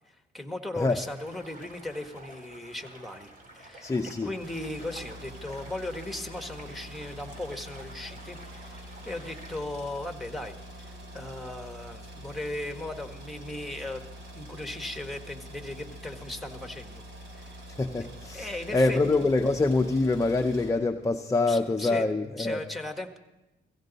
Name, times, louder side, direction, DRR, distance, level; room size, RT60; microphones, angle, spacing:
voice 1, 0.1-3.3 3.5-10.5 10.8-14.0 14.3-17.0 17.3-17.6 18.3-19.0 21.5-22.1 22.4-23.2, left 1 dB, ahead, 5 dB, 1.4 m, -37 dB
Stream, 1.0-9.6, right 1 dB, 45° right, 3.8 m, -50 dB
voice 2, 3.8-4.3 17.7-22.6, left 3 dB, 15° left, 5 dB, 0.7 m, -25 dB
sound 1, 4.4-20.7, equal, 80° right, 3.2 m, -45 dB
17.5 x 15.5 x 4.0 m, 0.98 s
cardioid pair, 90°, 20 cm